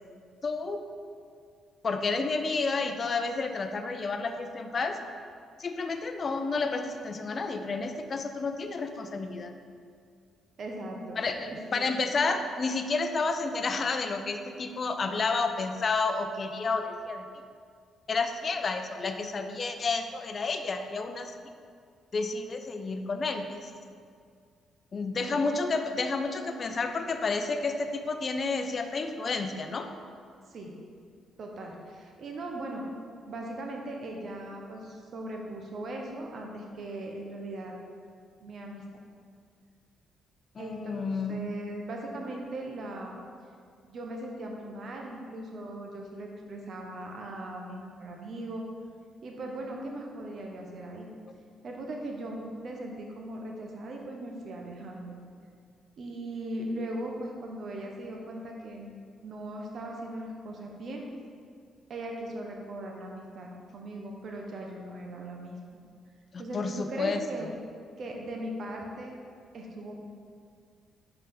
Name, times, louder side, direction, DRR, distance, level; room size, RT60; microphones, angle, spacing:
voice 1, 0.4-0.8 1.8-5.0 5.6-9.5 11.2-17.2 18.1-21.3 22.1-23.7 24.9-29.9 40.5-41.5 66.3-67.5, left 4 dB, 40° left, 7 dB, 0.6 m, -30 dB
voice 2, 10.6-11.2 11.5-11.9 25.2-25.4 30.5-30.7 31.4-32.8 33.3-37.7 38.4-38.8 40.6-43.2 43.8-48.6 49.2-51.1 51.6-55.1 56.0-61.0 61.9-65.6 66.4-67.5 68.0-69.1 69.5-69.9, right 1 dB, 55° right, 0 dB, 1.1 m, -39 dB
5.4 x 5.0 x 5.5 m, 2.2 s
cardioid pair, 90°, 0 cm